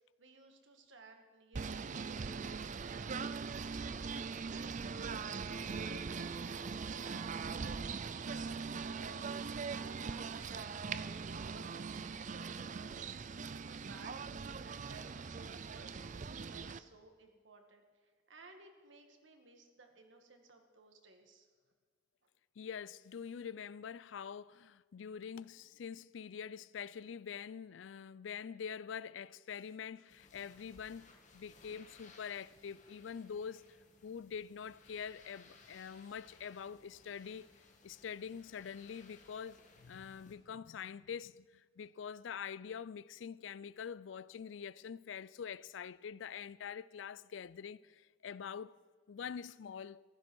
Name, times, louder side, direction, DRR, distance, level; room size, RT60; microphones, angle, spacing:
voice 1, 0.0-9.2 9.5-13.0 13.5-21.5, right 3 dB, 85° right, 1.8 m, -59 dB
Singing / Bird, 1.5-16.8, right 5 dB, 40° right, 0.5 m, -41 dB
voice 2, 22.6-33.8 34.0-37.5 37.8-48.8 49.1-50.0, left 7 dB, 80° left, 0.4 m, -45 dB
sound 1, 30.1-40.4, left 3 dB, 40° left, 1.7 m, -62 dB
15.5 x 12.0 x 6.3 m
head